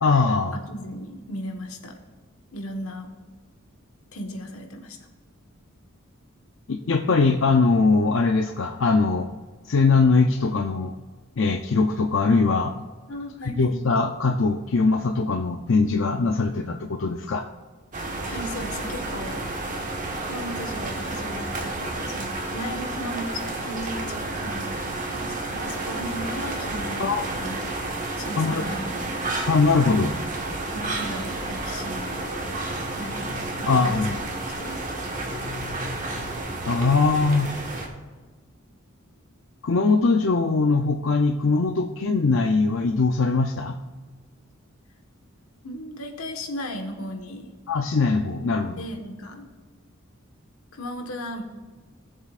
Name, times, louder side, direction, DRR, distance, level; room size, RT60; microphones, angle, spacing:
voice 1, 0.0-0.5 6.7-9.3 9.6-10.9 11.4-12.7 13.5-17.5 27.0-27.2 28.4-28.6 29.5-30.1 33.7-34.1 36.6-37.5 39.6-43.8 47.7-48.8, left 4 dB, 60° left, 4 dB, 0.5 m, -21 dB
voice 2, 0.5-2.0 2.5-3.1 4.1-5.0 13.1-13.8 18.3-19.5 20.2-27.6 28.1-28.9 30.7-32.6 32.9-33.3 33.6-34.2 34.6-34.8 45.6-47.5 48.8-49.5 50.7-51.4, equal, 85° left, 3 dB, 1.4 m, -36 dB
sound 1, 17.9-37.9, right 2 dB, 35° right, 1.3 m, -31 dB
18.5 x 7.4 x 2.5 m, 1.3 s
head